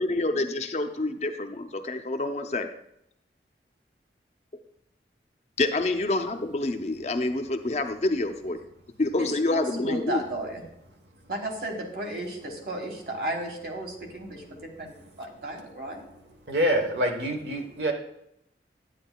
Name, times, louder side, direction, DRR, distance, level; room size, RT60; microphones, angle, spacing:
voice 1, 0.0-2.7 5.6-8.6 9.0-10.2, left 2 dB, 40° left, 7 dB, 0.5 m, -27 dB
voice 2, 9.2-10.6 11.3-16.0, right 1 dB, 55° right, 2 dB, 1.4 m, -34 dB
voice 3, 16.5-17.9, equal, 85° right, 4 dB, 1.1 m, -26 dB
9.8 x 9.1 x 2.2 m, 0.77 s
head